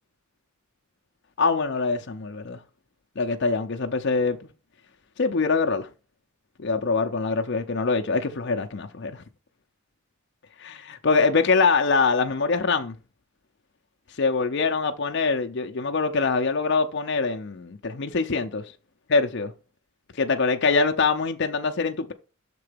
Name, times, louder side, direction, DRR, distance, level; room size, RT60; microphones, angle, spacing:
voice 1, 1.4-2.6 3.2-4.5 5.2-5.9 6.6-9.2 10.6-12.9 14.2-18.6 19.1-19.5 20.2-22.1, left 4 dB, 55° left, 0.6 m, -24 dB
6.7 x 3.8 x 5.0 m
head